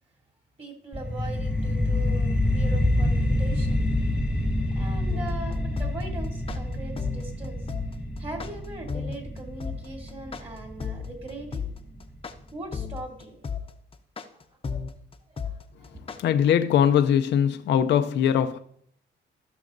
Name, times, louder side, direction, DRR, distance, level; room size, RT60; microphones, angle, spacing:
voice 1, 0.6-3.9 4.7-7.7 8.2-11.6 12.5-13.4 14.3-14.4 15.3-16.0, right 2 dB, 30° right, 2.8 m, -40 dB
sound 1, 0.9-11.9, left 1 dB, 5° right, 1.4 m, -27 dB
sound 2, 5.1-16.2, left 6 dB, 30° left, 0.7 m, -33 dB
voice 2, 16.2-18.6, left 9 dB, 65° left, 0.5 m, -21 dB
15.0 x 6.2 x 2.6 m
cardioid pair, 90°, 20 cm